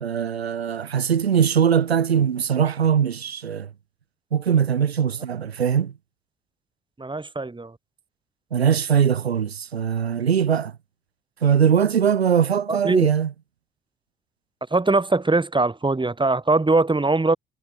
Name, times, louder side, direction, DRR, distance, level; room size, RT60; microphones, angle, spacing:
voice 1, 0.0-3.7 4.3-5.9 8.5-10.7 11.4-13.3, right 8 dB, 85° right, 0.7 m, -21 dB
voice 2, 7.0-7.7 12.7-13.1 14.7-17.4, right 3 dB, 15° right, 1.9 m, -21 dB
figure-of-eight pair, 45°, 31 cm